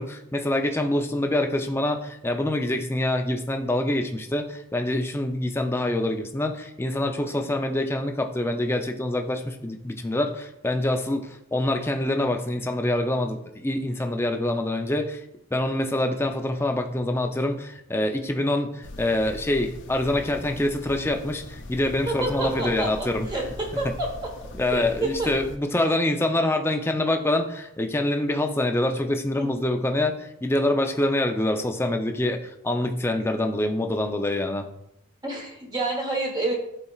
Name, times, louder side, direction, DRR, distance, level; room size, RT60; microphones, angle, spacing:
voice 1, 0.0-15.2 15.5-23.3 23.8-23.9 24.5-34.7, left 1 dB, 10° left, 4 dB, 0.5 m, -25 dB
sound 1, 18.8-25.6, left 1 dB, 55° left, 0.6 m, -40 dB
voice 2, 22.1-24.1 24.4-25.3 29.4-29.5 35.2-36.6, right 2 dB, 20° right, 0 dB, 1.0 m, -29 dB
12.5 x 4.2 x 2.4 m, 0.80 s
head